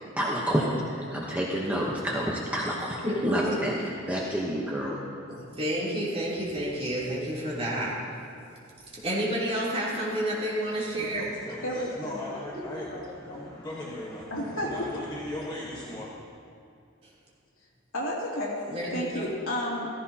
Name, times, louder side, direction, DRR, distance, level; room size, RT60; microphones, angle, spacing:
voice 1, 0.2-3.7 4.1-5.0, equal, 5° right, -4 dB, 1.0 m, -29 dB
voice 2, 3.0-3.6 5.3-8.0 8.9-11.3 18.7-19.3, right 1 dB, 30° right, -7 dB, 3.3 m, -30 dB
voice 3, 10.9-16.1, left 1 dB, 20° left, -7 dB, 1.3 m, -38 dB
voice 4, 11.6-12.4 12.9-13.0 13.3-13.4 14.3-14.7 17.9-18.5 18.9-19.9, left 1 dB, 80° left, -4 dB, 2.8 m, -32 dB
15.5 x 15.5 x 2.9 m, 2.5 s
head